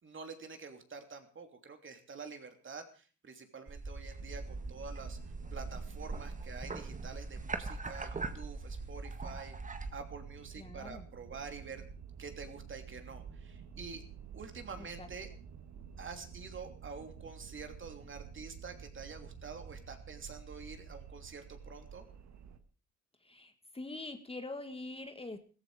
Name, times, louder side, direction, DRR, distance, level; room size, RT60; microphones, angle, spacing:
voice 1, 0.0-5.2 5.5-9.5 9.9-11.9 12.2-14.0 14.3-15.3 16.0-22.1, right 5 dB, 40° right, 6 dB, 3.1 m, -47 dB
sound 1, 3.7-9.9, right 3 dB, 25° right, 1.7 m, -41 dB
sound 2, 4.2-22.6, right 7 dB, 65° right, 1.7 m, -50 dB
voice 2, 10.6-11.1 14.8-15.1 23.2-25.4, left 2 dB, 20° left, 8 dB, 1.6 m, -44 dB
16.0 x 14.5 x 5.0 m, 0.38 s
cardioid pair, 90°, 30 cm